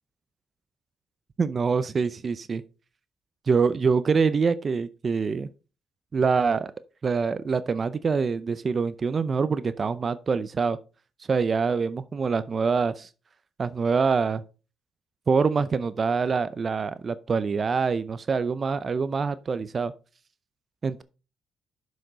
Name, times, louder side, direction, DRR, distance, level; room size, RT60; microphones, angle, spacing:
voice 1, 1.4-2.6 3.5-5.5 6.1-6.7 7.0-10.8 11.3-13.1 13.6-14.4 15.3-19.9 20.8-21.0, right 5 dB, 40° right, 0.5 m, -25 dB
6.7 x 6.3 x 4.0 m
cardioid pair, 90°, 0 cm